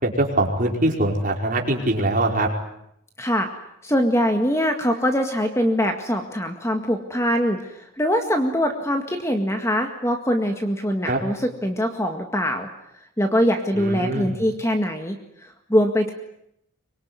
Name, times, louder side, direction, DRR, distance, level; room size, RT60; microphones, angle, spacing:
voice 1, 0.0-2.5 11.0-11.2 13.7-14.3, right 1 dB, 40° right, 1 dB, 4.9 m, -22 dB
voice 2, 3.2-3.5 3.8-12.7 13.2-16.1, equal, 15° left, 5 dB, 1.9 m, -23 dB
25.0 x 23.0 x 9.6 m, 0.76 s
head